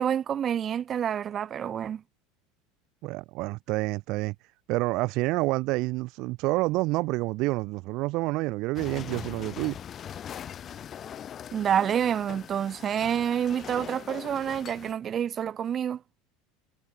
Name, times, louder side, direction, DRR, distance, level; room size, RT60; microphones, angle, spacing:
voice 1, 0.0-2.0 11.5-16.0, right 9 dB, 30° right, 1.3 m, -28 dB
voice 2, 3.0-4.3 4.7-9.8, right 22 dB, 55° right, 0.9 m, -28 dB
sound 1, 8.8-14.9, left 9 dB, 30° left, 3.2 m, -41 dB
supercardioid pair, 140°, 0 cm